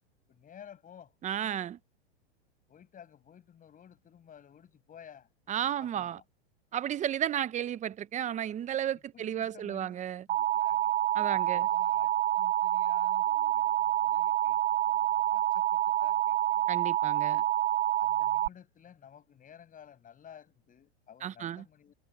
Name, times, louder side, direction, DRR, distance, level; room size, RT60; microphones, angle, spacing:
voice 1, 0.3-1.1 2.7-5.3 5.8-6.2 9.1-10.0 10.3-11.0 11.3-16.7 18.0-21.9, left 9 dB, 25° left, 7.0 m, -54 dB
voice 2, 1.2-1.8 5.5-6.2 6.7-10.2 11.1-11.7 16.7-17.4 21.2-21.6, right 10 dB, 20° right, 0.9 m, -33 dB
Alarm, 10.3-18.5, right 13 dB, 85° right, 0.8 m, -27 dB
hypercardioid pair, 115°, 33 cm